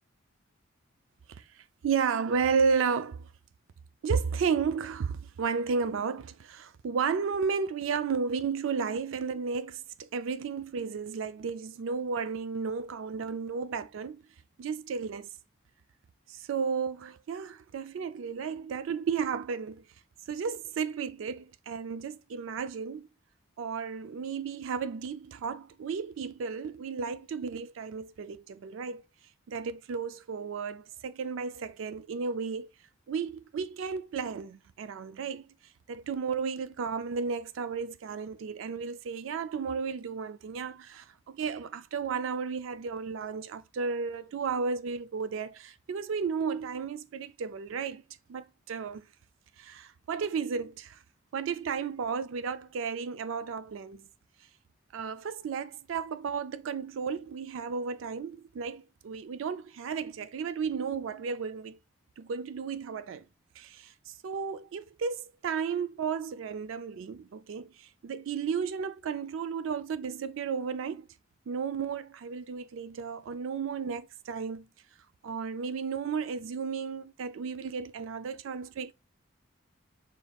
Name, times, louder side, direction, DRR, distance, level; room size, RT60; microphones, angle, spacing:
voice 1, 1.8-3.3 4.0-14.2 14.6-15.3 16.3-19.8 20.3-23.1 23.6-29.0 29.5-32.7 33.1-35.5 35.9-48.0 48.3-49.0 49.6-51.0 51.3-54.1 54.9-61.8 62.2-63.2 63.6-71.1 71.5-74.7 75.2-78.9, right 5 dB, 75° right, 0.4 m, -33 dB
5.1 x 4.0 x 2.3 m
head